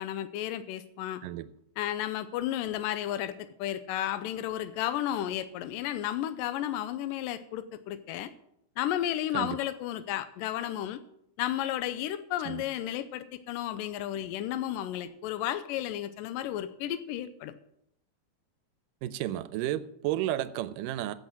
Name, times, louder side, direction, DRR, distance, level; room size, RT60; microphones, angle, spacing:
voice 1, 0.0-1.2 1.8-8.3 8.8-11.0 11.4-17.5, left 12 dB, 85° left, 11 dB, 2.3 m, -33 dB
voice 2, 19.0-21.1, right 13 dB, 85° right, 14 dB, 2.2 m, -32 dB
15.0 x 6.3 x 7.3 m, 0.74 s
omnidirectional pair, 3.8 m